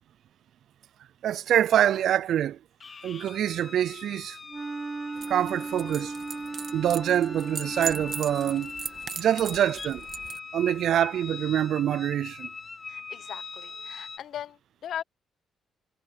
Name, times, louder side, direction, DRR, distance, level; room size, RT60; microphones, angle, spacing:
voice 1, 1.2-2.6 3.0-4.4 5.3-6.1 6.7-8.7 9.2-10.1 10.5-12.5, right 10 dB, 70° right, 0.3 m, -25 dB
sound 1, 2.8-14.2, left 4 dB, 35° left, 0.7 m, -42 dB
Wind instrument woodwind instrument, 4.5-9.0, right 3 dB, 30° right, 1.1 m, -37 dB
sound 2, 5.1-10.4, right 7 dB, 50° right, 1.5 m, -39 dB
voice 2, 12.9-15.0, left 10 dB, 70° left, 0.7 m, -39 dB
cardioid pair, 90°, 0 cm